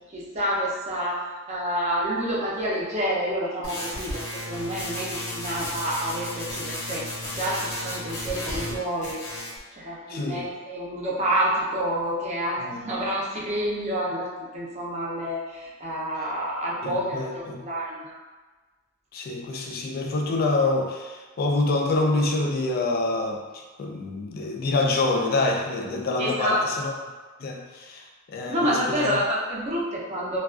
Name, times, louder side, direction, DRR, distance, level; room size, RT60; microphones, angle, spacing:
voice 1, 0.1-7.1 7.3-9.2 9.7-14.3 14.5-17.3 17.6-18.2 26.2-26.6 28.5-30.4, equal, 35° right, -5 dB, 0.5 m, -28 dB
sound 1, 3.6-8.8 9.0-9.6, left 1 dB, 85° left, 0.9 m, -33 dB
voice 2, 10.1-10.5 12.6-12.8 16.8-17.7 19.1-26.9 27.4-29.2, left 2 dB, 45° left, 1 dB, 0.3 m, -26 dB
2.3 x 2.2 x 2.4 m, 1.3 s
head